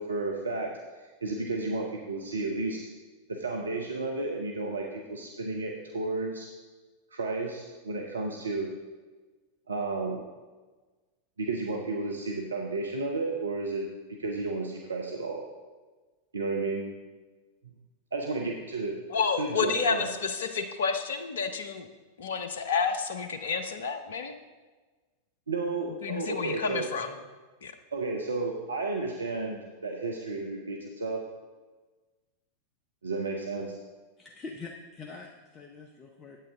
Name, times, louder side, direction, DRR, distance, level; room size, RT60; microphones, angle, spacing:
voice 1, 0.0-2.9 3.3-6.5 7.1-8.7 9.7-10.2 11.4-15.5 16.3-16.8 18.1-19.0 19.4-20.1 25.5-26.9 27.9-31.2 33.0-33.7, right 3 dB, 75° right, 1 dB, 0.7 m, -32 dB
voice 2, 19.1-21.9 22.2-24.3 26.0-27.1 27.6-27.7, left 5 dB, 60° left, 8 dB, 0.7 m, -30 dB
voice 3, 34.2-36.4, left 4 dB, 20° left, 1 dB, 0.7 m, -44 dB
8.7 x 8.4 x 3.7 m, 1.3 s
figure-of-eight pair, 90°, 0 cm